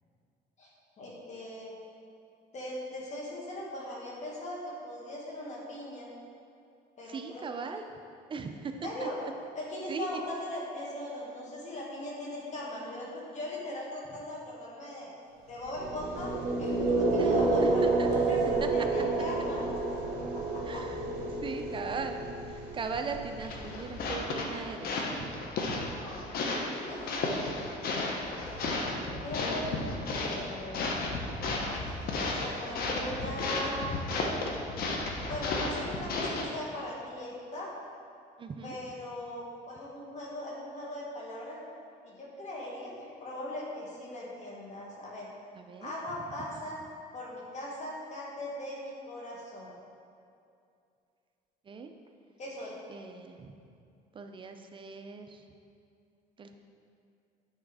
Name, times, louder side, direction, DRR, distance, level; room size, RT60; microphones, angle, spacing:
voice 1, 1.0-1.8 2.5-6.1 7.0-7.4 8.8-9.2 9.5-15.1 15.5-16.3 16.6-19.8 20.3-20.8 25.9-27.3 28.2-29.9 30.1-30.9 31.6-33.9 35.3-37.7 38.6-41.6 42.0-45.3 45.8-46.8 47.1-49.7 52.4-52.8, left 1 dB, 45° left, -4 dB, 1.7 m, -40 dB
voice 2, 7.1-7.8 8.3-8.7 9.0-9.3 9.9-10.1 17.2-18.1 18.6-18.7 20.7-21.0 21.4-25.3 38.4-38.8 45.5-45.9 51.7-51.9 52.9-53.5 54.1-55.4 56.4-56.6, right 5 dB, 30° right, 5 dB, 0.5 m, -39 dB
sound 1, 15.7-23.8, right 3 dB, 75° right, 1.3 m, -29 dB
sound 2, 23.4-36.4, left 2 dB, 60° left, 0.9 m, -33 dB
8.7 x 3.4 x 4.8 m, 2.5 s
cardioid pair, 110°, 17 cm